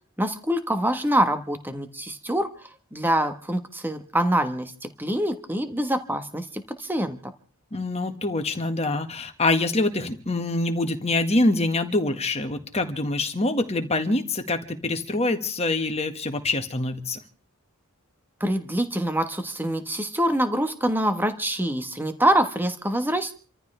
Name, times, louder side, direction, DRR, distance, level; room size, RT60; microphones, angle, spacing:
voice 1, 0.2-2.5 2.9-4.7 5.0-7.3 18.4-23.3, right 1 dB, 10° right, 8 dB, 1.3 m, -25 dB
voice 2, 7.7-17.2, left 2 dB, 30° left, 6 dB, 1.7 m, -25 dB
29.0 x 14.5 x 3.4 m, 0.39 s
head